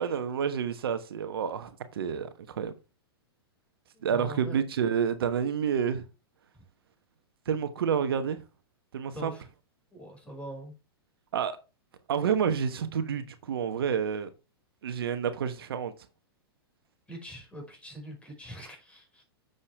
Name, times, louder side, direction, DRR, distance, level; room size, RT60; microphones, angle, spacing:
voice 1, 0.0-2.7 4.0-6.0 7.5-8.4 8.9-9.3 11.3-11.6 12.1-14.3 14.8-15.9, right 7 dB, 70° right, 1.1 m, -29 dB
voice 2, 3.9-4.6 9.1-9.5 9.9-10.7 17.1-19.2, equal, 10° left, 5.4 m, -43 dB
9.7 x 6.9 x 3.4 m
figure-of-eight pair, 105°, 13 cm